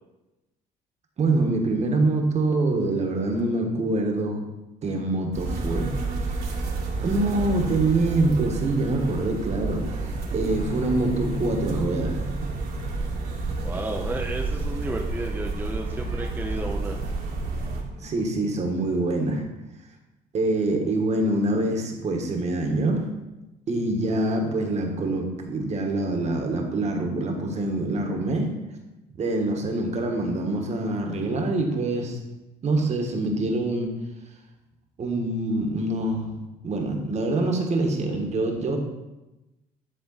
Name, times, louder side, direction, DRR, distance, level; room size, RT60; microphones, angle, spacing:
voice 1, 1.2-4.4 4.8-5.9 7.0-12.2 18.0-19.4 20.3-23.1 23.7-28.5 29.2-32.2 32.6-33.9 35.0-36.4 36.6-38.8, right 2 dB, 40° right, 2 dB, 1.3 m, -25 dB
sound 1, 5.3-17.8, right 3 dB, 65° right, 1.6 m, -30 dB
Bowed string instrument, 10.4-14.1, left 2 dB, 45° left, 0.9 m, -36 dB
voice 2, 13.6-17.0, right 2 dB, 10° right, 0 dB, 0.6 m, -32 dB
10.5 x 3.7 x 3.9 m, 1.0 s
cardioid pair, 110°, 17 cm